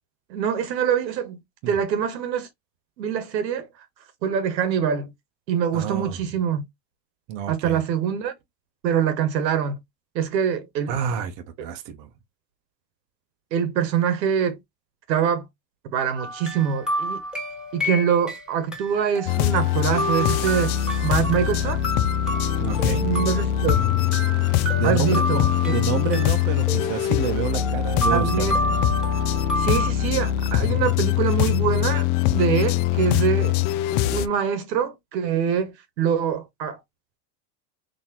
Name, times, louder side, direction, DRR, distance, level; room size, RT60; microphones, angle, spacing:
voice 1, 0.3-1.4 1.7-2.5 3.0-3.7 4.2-5.1 5.5-6.6 7.5-8.3 8.8-9.8 10.1-10.9 13.5-14.6 15.1-15.5 15.8-17.2 17.7-20.8 21.0-21.8 23.0-23.8 24.8-25.7 28.1-28.6 29.6-33.6 34.0-36.8, right 8 dB, 85° right, 1.5 m, -24 dB
voice 2, 5.7-6.2 7.3-7.8 10.9-12.1 22.6-23.1 24.8-28.8, right 8 dB, 50° right, 0.9 m, -29 dB
sound 1, 16.2-18.4 18.7-29.9, equal, ahead, 1.7 m, -30 dB
sound 2, 19.3-34.3, left 13 dB, 40° left, 0.4 m, -23 dB
4.1 x 2.9 x 2.9 m
supercardioid pair, 120°, 50 cm